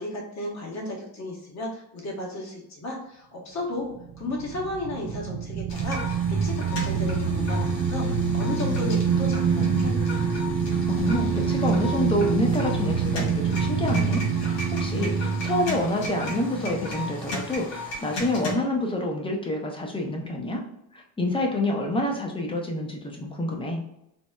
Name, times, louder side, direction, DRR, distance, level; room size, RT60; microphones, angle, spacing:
voice 1, 0.0-10.2, left 2 dB, 35° left, -2 dB, 1.1 m, -34 dB
sound 1, 3.9-17.6, right 7 dB, 35° right, 0.5 m, -27 dB
sound 2, 5.7-18.5, right 1 dB, 85° left, 1.3 m, -31 dB
voice 2, 10.8-20.6 20.9-23.8, left 1 dB, 10° left, 1 dB, 0.5 m, -28 dB
4.1 x 2.0 x 2.2 m, 0.81 s
cardioid pair, 110°, 45 cm